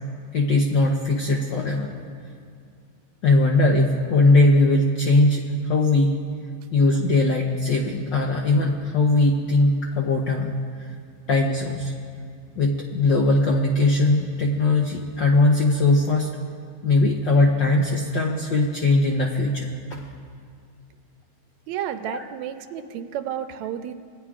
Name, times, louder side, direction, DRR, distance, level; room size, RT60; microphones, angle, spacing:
voice 1, 0.3-2.0 3.2-6.2 6.7-10.5 11.3-11.9 12.6-16.3 16.8-20.1 22.0-22.3, left 2 dB, 80° left, 0 dB, 1.0 m, -20 dB
voice 2, 21.7-23.9, right 10 dB, 80° right, 9 dB, 1.9 m, -31 dB
25.0 x 18.5 x 2.4 m, 2.3 s
omnidirectional pair, 3.3 m